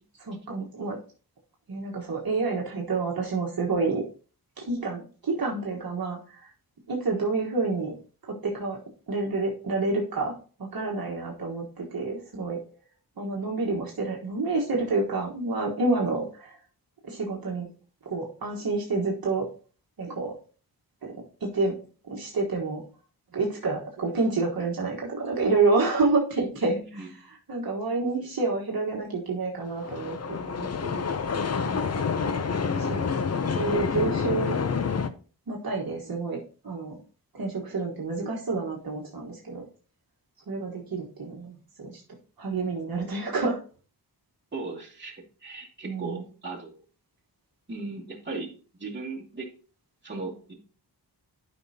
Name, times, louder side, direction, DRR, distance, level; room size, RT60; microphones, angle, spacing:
voice 1, 0.2-1.0 1.7-4.0 4.6-6.5 6.9-7.9 8.2-8.8 9.1-12.6 13.2-16.6 17.0-17.6 18.0-19.5 20.0-20.4 21.0-21.1 21.4-21.8 22.0-22.8 23.3-31.0 31.6-32.1 32.7-33.1 33.4-34.5 35.5-37.0 37.3-39.6 40.5-42.0 42.4-43.6 45.8-46.2, right 3 dB, 60° right, -1 dB, 1.4 m, -29 dB
voice 2, 26.8-27.1 44.5-45.1 45.4-46.8 47.7-49.5 50.0-50.5, right 3 dB, 25° right, -4 dB, 2.4 m, -37 dB
sound 1, 29.7-35.1, left 5 dB, 40° left, 0.6 m, -28 dB
12.0 x 5.4 x 2.8 m, 0.38 s
wide cardioid pair, 135°, 41 cm